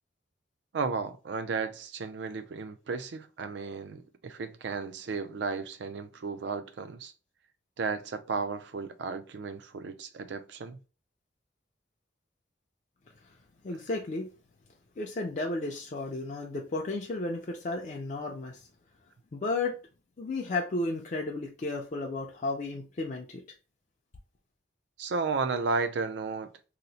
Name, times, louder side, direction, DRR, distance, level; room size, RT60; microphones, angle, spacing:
voice 1, 0.7-7.1 7.8-10.8 25.0-26.5, right 4 dB, 70° right, 0.4 m, -34 dB
voice 2, 13.6-14.3 15.0-18.6 19.3-19.8 20.2-23.4, left 2 dB, 40° left, 0.4 m, -33 dB
2.8 x 2.0 x 3.9 m
head